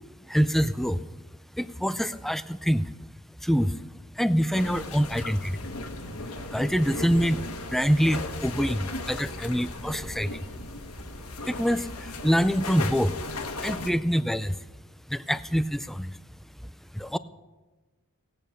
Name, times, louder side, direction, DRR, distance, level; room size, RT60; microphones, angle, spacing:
voice 1, 0.3-1.0 1.6-2.9 3.4-3.8 4.2-5.6 6.5-7.4 7.7-10.5 11.5-13.1 13.6-14.6 15.1-16.2 16.9-17.2, equal, ahead, 13 dB, 0.4 m, -25 dB
sound 1, 4.5-13.9, left 2 dB, 75° left, 1.4 m, -37 dB
18.0 x 8.8 x 6.6 m, 1.2 s
head